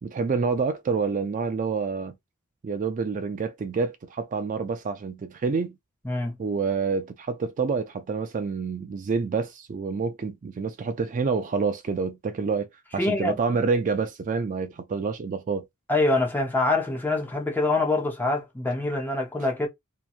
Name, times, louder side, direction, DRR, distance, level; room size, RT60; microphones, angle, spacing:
voice 1, 0.0-2.1 2.6-5.8 6.4-12.7 12.9-15.6, right 5 dB, 35° right, 0.3 m, -27 dB
voice 2, 6.0-6.4 13.0-13.4 15.9-19.7, left 2 dB, 10° left, 0.6 m, -25 dB
2.8 x 2.2 x 2.4 m
head